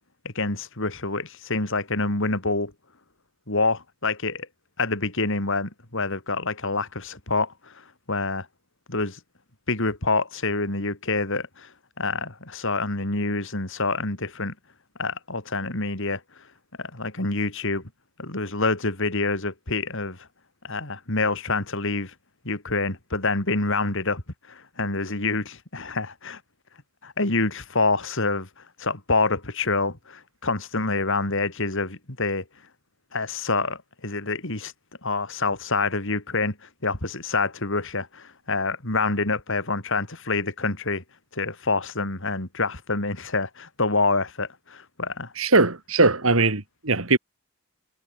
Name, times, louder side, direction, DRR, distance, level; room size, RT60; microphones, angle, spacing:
voice 1, 0.2-2.7 3.5-4.5 4.8-8.5 8.9-9.2 9.7-11.7 12.0-14.5 15.0-16.2 16.8-17.8 18.2-20.2 20.6-22.1 22.4-24.2 24.5-26.4 27.0-32.4 33.1-34.7 35.0-41.0 41.3-45.3, left 3 dB, 65° left, 5.0 m, -27 dB
voice 2, 45.4-47.2, right 3 dB, 70° right, 2.8 m, -20 dB
head